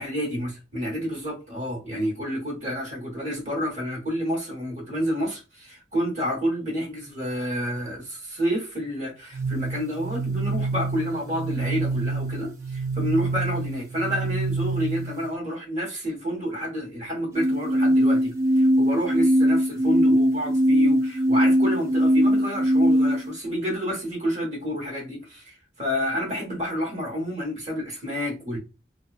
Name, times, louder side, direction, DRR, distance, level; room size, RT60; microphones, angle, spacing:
voice 1, 0.0-28.6, equal, 40° right, 1.1 m, -29 dB
sound 1, 9.3-15.3 17.3-23.3, right 1 dB, 15° right, 0.4 m, -22 dB
2.6 x 2.3 x 2.3 m
head